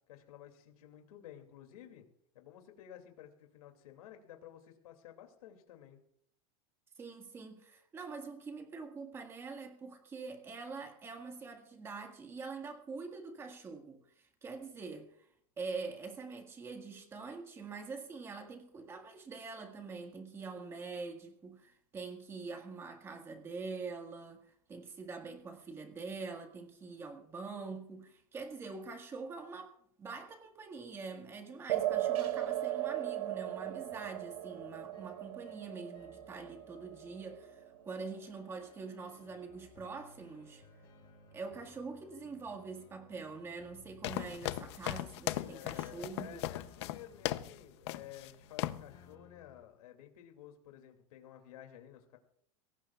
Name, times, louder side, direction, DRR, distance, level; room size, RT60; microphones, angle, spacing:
voice 1, 0.1-2.1 2.3-6.0 45.4-52.2, left 11 dB, 85° left, 5 dB, 2.6 m, -53 dB
voice 2, 7.0-15.3 15.6-29.7 30.0-40.6 41.3-46.4, right 4 dB, 15° right, 5 dB, 1.7 m, -45 dB
sound 1, 31.7-38.7, right 13 dB, 80° right, 2.2 m, -37 dB
sound 2, 32.0-49.6, left 4 dB, 25° left, 5.9 m, -62 dB
sound 3, 44.0-47.6 47.9-48.3 48.6-48.9, left 15 dB, 50° left, 0.7 m, -37 dB
23.0 x 17.5 x 2.4 m, 0.68 s
supercardioid pair, 175°, 18 cm